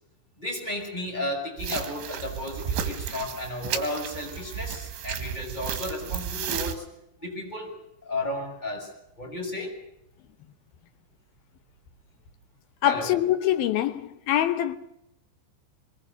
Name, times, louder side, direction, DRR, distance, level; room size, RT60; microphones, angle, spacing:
voice 1, 0.4-6.8 7.2-7.7 8.0-8.9 9.2-9.7 12.8-13.1, left 1 dB, 10° left, 7.2 m, -33 dB
sound 1, 1.6-6.8, right 9 dB, 75° right, 4.1 m, -33 dB
voice 2, 12.8-14.8, left 12 dB, 75° left, 2.3 m, -24 dB
23.5 x 22.5 x 6.7 m
omnidirectional pair, 5.5 m